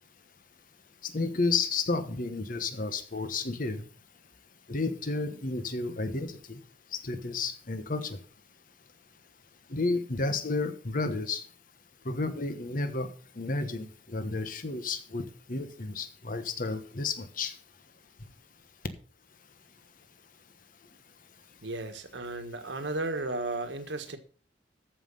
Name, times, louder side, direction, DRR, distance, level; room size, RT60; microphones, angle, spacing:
voice 1, 1.0-3.8 4.7-6.6 6.9-8.2 9.7-11.4 12.0-15.2 15.5-17.5, left 3 dB, 50° left, 10 dB, 1.2 m, -31 dB
voice 2, 21.6-24.2, right 2 dB, 85° right, 7 dB, 1.4 m, -34 dB
14.0 x 5.6 x 5.4 m, 0.41 s
head